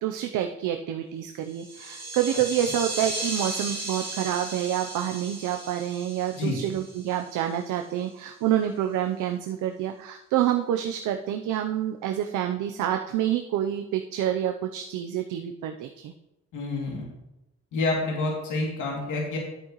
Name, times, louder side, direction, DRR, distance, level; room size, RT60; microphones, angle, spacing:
voice 1, 0.0-16.1, right 11 dB, 85° right, 5 dB, 0.6 m, -28 dB
sound 1, 1.5-7.6, right 2 dB, 15° right, 2.4 m, -36 dB
voice 2, 16.5-17.1 17.7-19.4, left 2 dB, 80° left, -2 dB, 2.6 m, -28 dB
11.0 x 8.5 x 3.0 m, 0.95 s
cardioid pair, 90°, 30 cm